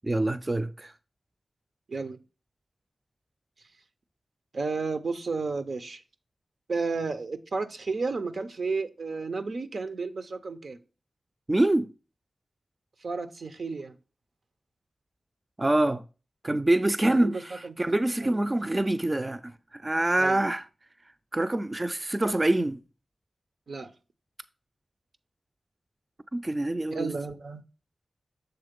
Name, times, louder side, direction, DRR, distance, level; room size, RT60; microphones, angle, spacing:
voice 1, 0.0-0.9 11.5-11.9 15.6-16.0 16.4-20.6 21.3-22.8 26.3-27.1, right 1 dB, 25° right, 0.3 m, -25 dB
voice 2, 4.5-6.0 6.7-10.8 13.0-13.9 17.0-17.7 18.2-18.4 20.2-20.4 23.7-23.9 26.9-27.6, right 4 dB, 75° right, 0.6 m, -32 dB
6.8 x 3.7 x 5.1 m
wide cardioid pair, 90°, 0 cm